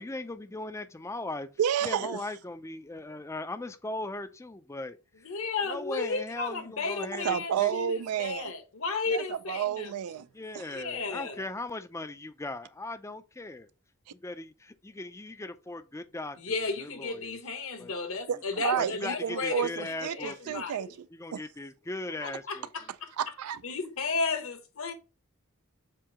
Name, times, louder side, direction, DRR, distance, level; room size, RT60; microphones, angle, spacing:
voice 1, 0.0-1.5 1.8-5.0 5.7-7.7 10.3-13.7 14.1-16.4 16.8-17.4 17.8-17.9 18.8-20.6 21.2-22.7, left 2 dB, 10° left, 0.4 m, -38 dB
voice 2, 1.6-2.2 7.2-8.5 9.1-10.3 10.5-10.8 18.3-18.4 18.6-20.9 21.3-21.4 23.2-23.6, right 8 dB, 80° right, 0.4 m, -30 dB
voice 3, 5.1-9.9 10.7-11.5 16.4-20.9 22.2-23.1 23.6-24.9, left 4 dB, 65° left, 1.2 m, -34 dB
7.5 x 2.7 x 4.8 m
head